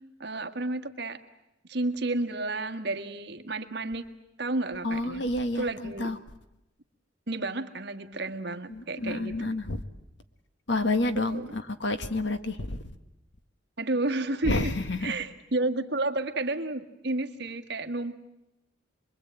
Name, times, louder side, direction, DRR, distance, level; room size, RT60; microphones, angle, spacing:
voice 1, 0.2-1.2 1.7-4.1 4.4-5.2 5.6-6.1 7.3-9.5 11.2-11.6 13.8-14.7 15.0-18.2, right 2 dB, 60° right, 6 dB, 1.8 m, -31 dB
voice 2, 4.8-6.2 8.7-9.8 10.7-12.8 14.4-15.1, left 2 dB, 65° left, 9 dB, 1.5 m, -29 dB
25.5 x 22.5 x 8.9 m, 0.91 s
head